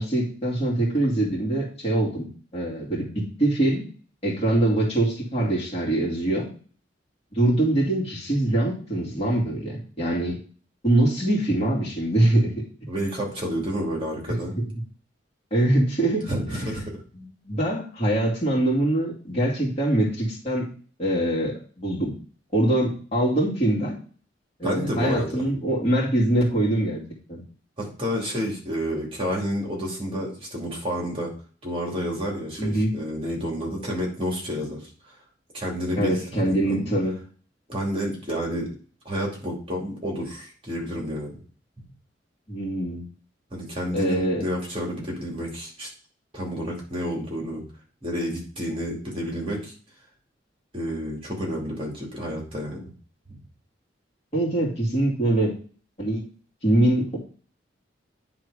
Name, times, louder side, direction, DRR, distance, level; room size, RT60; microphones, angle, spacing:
voice 1, 0.0-3.8 4.2-6.5 7.3-10.4 10.8-12.5 15.5-16.3 16.7-16.8 17.1-20.7 21.0-22.1 22.5-23.9 24.6-27.0 27.3-27.4 32.6-32.9 36.0-37.2 42.5-43.0 43.9-44.4 54.3-55.5 56.0-56.2 56.6-57.2, right 1 dB, 35° left, -4 dB, 2.5 m, -23 dB
voice 2, 12.9-14.6 16.3-16.9 24.6-25.4 27.8-31.3 31.6-34.8 35.1-35.2 35.5-36.9 37.7-38.8 39.0-41.4 43.5-45.9 46.3-47.6 48.0-49.7 50.7-52.8, equal, 30° right, -2 dB, 2.7 m, -30 dB
9.8 x 3.7 x 5.0 m, 0.41 s
head